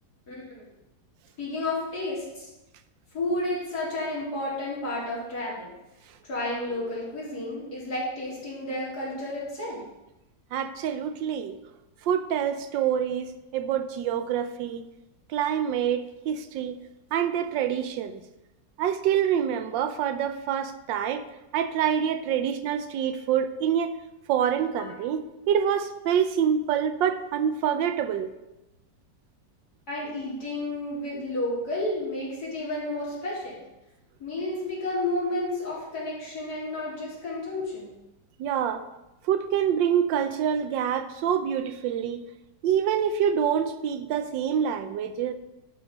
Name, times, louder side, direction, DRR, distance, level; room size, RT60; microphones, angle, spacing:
voice 1, 0.3-0.7 1.4-2.5 3.1-5.7 6.2-9.8 24.8-24.9 29.9-33.6 34.2-37.9, left 1 dB, 60° left, -8 dB, 3.8 m, -31 dB
voice 2, 10.5-11.6 12.0-14.9 15.3-16.8 17.1-18.2 18.8-21.2 21.5-23.9 24.3-28.3 38.4-38.8 39.2-42.2 42.6-45.3, right 8 dB, 90° right, 10 dB, 1.3 m, -26 dB
11.5 x 4.0 x 5.1 m, 0.96 s
omnidirectional pair, 1.9 m